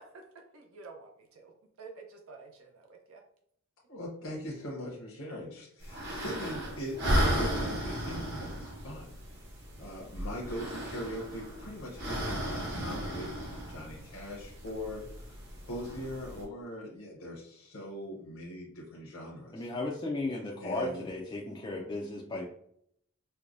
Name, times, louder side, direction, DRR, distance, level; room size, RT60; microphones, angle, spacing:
voice 1, 0.0-3.2, right 4 dB, 70° right, 3 dB, 0.6 m, -50 dB
voice 2, 3.9-9.2 9.8-15.0 15.6-19.7 20.6-21.0, equal, 65° left, -4 dB, 0.8 m, -41 dB
sound 1, 5.8-16.4, equal, 50° right, 1.0 m, -35 dB
voice 3, 19.5-22.5, left 2 dB, 20° left, -3 dB, 0.3 m, -35 dB
4.5 x 2.2 x 2.5 m, 0.67 s
head